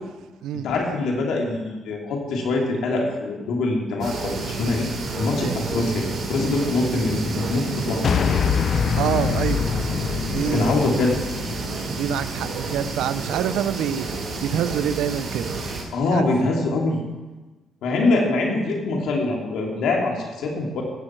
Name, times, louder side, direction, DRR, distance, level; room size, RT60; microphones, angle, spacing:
voice 1, 0.6-4.9 5.2-8.1 10.5-11.2 15.9-17.0 17.8-20.8, left 2 dB, 80° left, -1 dB, 2.6 m, -23 dB
sound 1, 4.0-15.8, right 3 dB, 65° right, 3.0 m, -30 dB
sound 2, 8.0-12.5, left 7 dB, 55° left, 0.4 m, -25 dB
voice 2, 9.0-9.7 10.3-10.8 11.8-14.1 14.4-15.6 16.1-16.2, right 9 dB, 85° right, 14 dB, 0.5 m, -26 dB
15.0 x 7.6 x 4.5 m, 1.2 s
cardioid pair, 90°, 0 cm